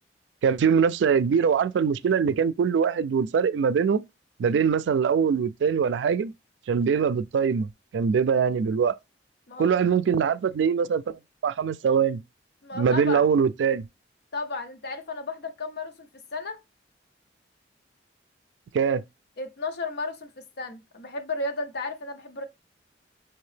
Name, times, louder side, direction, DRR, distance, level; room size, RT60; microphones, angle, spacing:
voice 1, 0.4-4.0 4.4-6.3 6.7-7.7 7.9-9.0 9.6-12.2 12.7-13.8 18.7-19.0, right 6 dB, 85° right, 0.3 m, -23 dB
voice 2, 12.6-13.2 14.3-16.6 19.4-20.3 20.6-22.4, left 3 dB, 65° left, 0.7 m, -33 dB
5.7 x 2.8 x 3.2 m
head